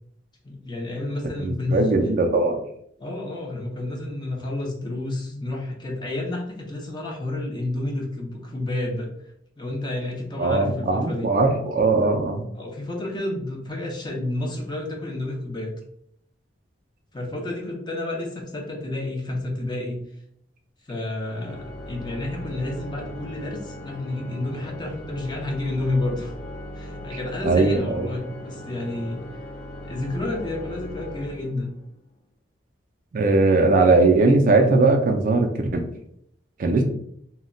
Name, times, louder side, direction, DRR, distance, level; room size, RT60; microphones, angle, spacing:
voice 1, 0.4-1.8 3.0-9.1 9.6-11.3 12.5-15.7 17.1-20.0 20.9-26.3 26.7-29.2 29.8-31.7, left 2 dB, 25° left, 0 dB, 0.5 m, -30 dB
voice 2, 1.4-2.6 10.4-12.4 27.4-28.1 33.1-35.9 36.6-36.8, right 3 dB, 45° right, 4 dB, 0.3 m, -19 dB
Organ, 21.2-32.0, left 1 dB, 85° left, 0.6 m, -38 dB
2.2 x 2.1 x 3.6 m, 0.71 s
head